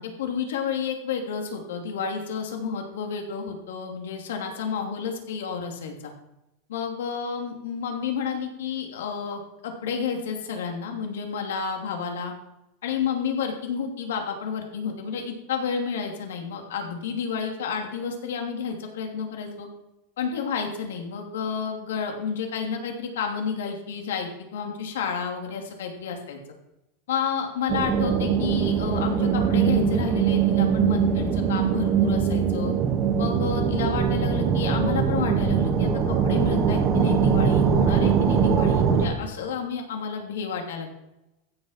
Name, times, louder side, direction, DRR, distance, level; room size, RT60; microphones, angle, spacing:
voice 1, 0.0-6.1 6.7-12.3 12.8-19.7 20.2-26.4 27.1-32.7 33.2-40.9, left 6 dB, 85° left, 3 dB, 3.0 m, -30 dB
sound 1, 27.7-39.1, right 7 dB, 40° right, 2.0 m, -22 dB
15.0 x 7.5 x 5.8 m, 0.92 s
supercardioid pair, 125°, 0 cm